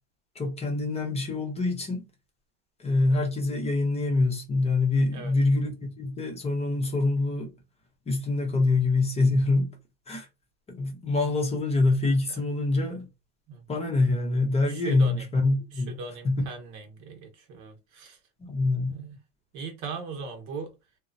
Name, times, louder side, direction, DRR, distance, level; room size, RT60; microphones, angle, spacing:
voice 1, 0.3-2.1 2.8-7.5 8.1-9.8 10.1-10.3 10.7-13.1 13.7-16.0 16.2-16.4 18.4-19.0, left 3 dB, 20° left, 0.6 m, -25 dB
voice 2, 14.7-15.2 15.8-18.2 18.9-19.2 19.5-20.7, right 4 dB, 55° right, 1.0 m, -39 dB
2.9 x 2.1 x 2.5 m
supercardioid pair, 135°, 34 cm